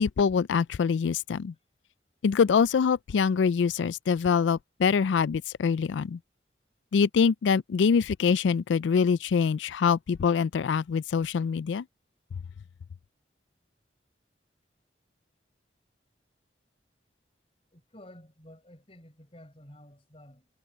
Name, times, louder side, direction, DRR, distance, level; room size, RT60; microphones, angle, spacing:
voice 1, 0.0-1.5 2.2-6.2 6.9-11.8, left 6 dB, 80° left, 0.4 m, -24 dB
voice 2, 17.7-20.5, left 1 dB, 30° left, 7.3 m, -51 dB
head